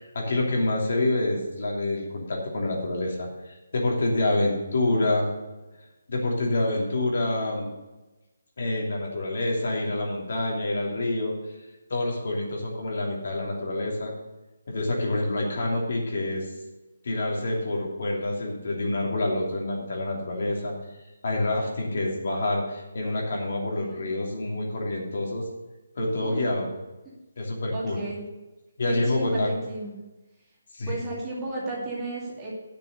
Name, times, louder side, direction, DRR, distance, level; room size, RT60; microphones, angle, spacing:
voice 1, 0.0-5.3 6.1-7.7 8.6-11.4 11.9-14.1 14.7-16.5 17.0-20.7 21.2-25.4 26.0-26.7 27.4-28.0 28.8-29.5 30.7-30.9, left 2 dB, 55° left, -1 dB, 2.9 m, -27 dB
voice 2, 23.7-24.0 26.2-26.4 27.7-28.2 28.9-30.0 30.9-32.5, right 2 dB, 10° right, -6 dB, 2.4 m, -33 dB
9.9 x 6.9 x 6.6 m, 1.1 s
hypercardioid pair, 170°, 0 cm